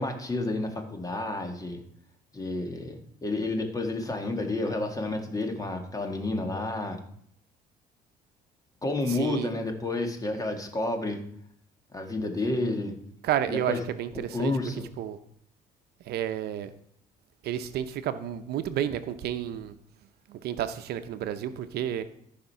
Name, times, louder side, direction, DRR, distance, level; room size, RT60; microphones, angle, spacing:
voice 1, 0.0-1.8 2.3-7.0 8.8-11.2 11.9-13.0 13.5-13.8 14.3-14.9, left 2 dB, 20° left, 5 dB, 1.8 m, -30 dB
voice 2, 9.2-9.5 13.2-14.5 15.0-15.2 16.1-16.7 17.4-19.7 20.3-22.0, right 10 dB, 70° right, 10 dB, 0.8 m, -31 dB
13.5 x 5.2 x 5.7 m, 0.66 s
cardioid pair, 110°, 17 cm